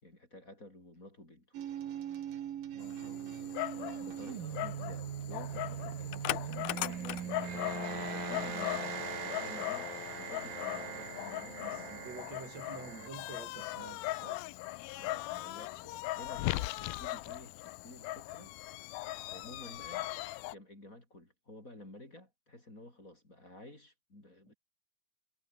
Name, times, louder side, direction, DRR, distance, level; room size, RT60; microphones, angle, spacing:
voice 1, 0.0-1.6 3.7-12.5 15.0-18.6 19.3-20.1 20.5-24.6, left 1 dB, 20° left, 5.7 m, -52 dB
sound 1, 1.5-13.1, right 10 dB, 70° right, 3.6 m, -41 dB
voice 2, 2.7-3.6 11.6-14.4 24.5-24.6, right 5 dB, 50° right, 4.1 m, -49 dB
Dog, 2.8-20.5, left 17 dB, 85° left, 2.7 m, -39 dB
Marimba xylophone / Wood, 6.8-9.0, right 3 dB, 20° right, 1.9 m, -57 dB
omnidirectional pair, 4.2 m